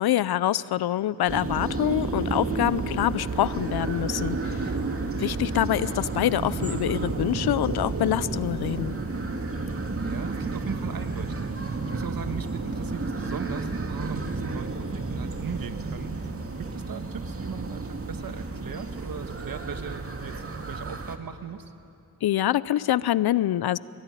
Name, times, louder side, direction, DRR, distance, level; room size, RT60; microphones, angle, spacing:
voice 1, 0.0-4.6 5.2-8.9 22.2-23.8, left 12 dB, 85° left, 19 dB, 0.6 m, -25 dB
sound 1, 1.3-21.2, right 3 dB, 40° right, 2.2 m, -31 dB
voice 2, 4.7-5.2 9.9-16.3 16.6-21.7, right 6 dB, 65° right, 8 dB, 1.7 m, -39 dB
22.5 x 22.0 x 9.9 m, 2.6 s
cardioid pair, 60°, 37 cm